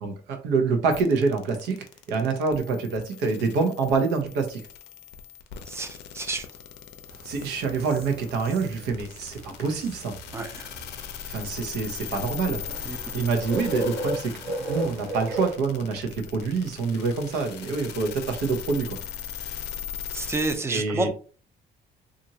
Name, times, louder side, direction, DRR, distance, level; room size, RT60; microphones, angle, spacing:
voice 1, 0.0-1.8 2.1-4.6 7.2-10.1 11.3-12.6 13.1-14.3 14.7-19.0 20.7-21.1, right 4 dB, 90° right, 0.7 m, -26 dB
sound 1, 0.9-20.6, left 8 dB, 80° left, 0.5 m, -39 dB
voice 2, 5.7-6.5 10.3-10.7 12.8-13.1 20.1-21.1, right 3 dB, 15° right, 0.5 m, -30 dB
sound 2, 7.1-15.5, right 1 dB, 70° right, 1.2 m, -36 dB
2.9 x 2.5 x 2.7 m
cardioid pair, 110°, 17 cm